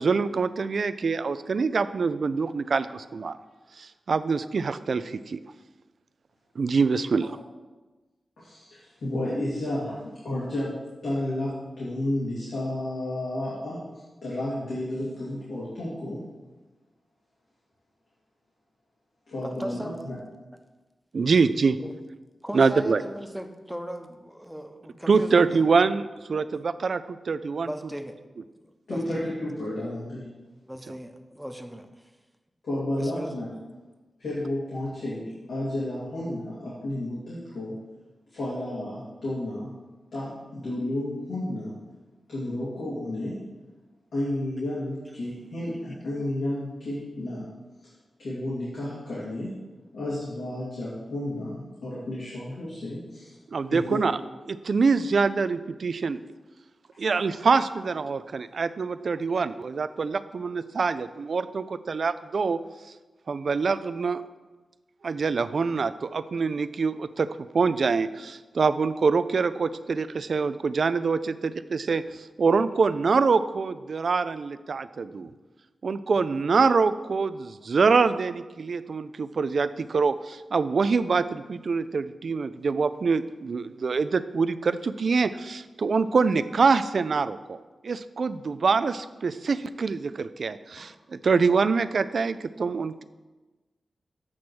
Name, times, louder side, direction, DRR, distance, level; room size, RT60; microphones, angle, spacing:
voice 1, 0.0-3.4 3.8-5.4 6.6-7.3 21.1-21.8 22.5-23.0 25.1-27.7 53.5-54.1 54.5-56.2 57.0-62.6 63.3-64.2 65.0-67.3 67.5-75.3 75.8-93.0, right 4 dB, 70° right, 13 dB, 0.3 m, -25 dB
voice 2, 8.4-10.0 10.2-10.7 11.0-13.8 14.2-16.2 19.3-20.1 28.9-30.3 32.6-33.5 34.2-37.8 38.3-39.7 40.1-41.7 42.3-43.4 44.1-47.5 47.8-47.9 48.2-49.5 49.9-53.3 53.7-53.8, left 1 dB, 85° left, -10 dB, 2.4 m, -32 dB
voice 3, 19.4-20.0 21.8-21.9 22.4-25.6 27.6-28.1 28.6-29.2 30.7-32.1 33.0-33.3, equal, ahead, 5 dB, 0.8 m, -38 dB
8.6 x 3.2 x 6.0 m, 1.2 s
cardioid pair, 45°, 0 cm